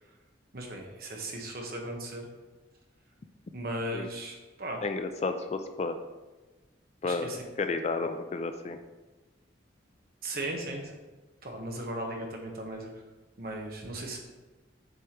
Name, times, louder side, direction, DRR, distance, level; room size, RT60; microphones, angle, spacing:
voice 1, 0.5-2.3 3.5-4.8 7.0-7.4 10.2-10.9 11.4-12.9 13.4-14.2, right 1 dB, 50° right, 1 dB, 1.1 m, -37 dB
voice 2, 4.8-6.0 7.0-7.3 7.6-8.8, left 3 dB, 35° left, 8 dB, 0.3 m, -31 dB
7.7 x 4.9 x 3.0 m, 1.2 s
head